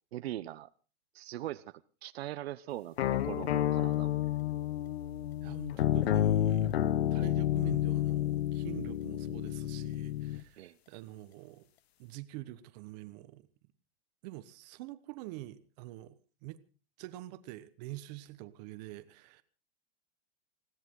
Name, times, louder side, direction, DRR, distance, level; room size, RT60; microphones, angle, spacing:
voice 1, 0.1-0.7 1.1-4.3 10.6-10.7, right 14 dB, 80° right, 0.8 m, -41 dB
sound 1, 3.0-10.4, left 12 dB, 90° left, 0.9 m, -30 dB
voice 2, 5.4-6.7 7.1-11.7 12.0-13.5 14.2-16.6 17.0-19.4, right 16 dB, 40° right, 1.2 m, -46 dB
20.5 x 16.5 x 3.8 m
supercardioid pair, 155°, 31 cm